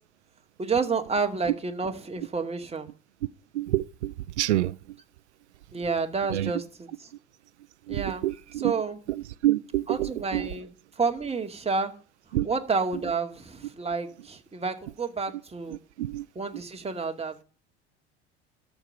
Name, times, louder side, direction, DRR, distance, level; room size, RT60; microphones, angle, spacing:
voice 1, 0.6-2.9 5.7-7.1 7.9-8.2 8.6-9.0 9.9-10.7 11.0-11.9 12.4-15.8 16.4-17.4, right 4 dB, 20° right, 2.3 m, -30 dB
voice 2, 3.5-4.7 6.3-6.5 7.9-8.7 9.1-10.5 12.3-12.5 15.7-16.3, right 15 dB, 80° right, 0.6 m, -28 dB
13.5 x 5.4 x 9.0 m
hypercardioid pair, 75°, 34 cm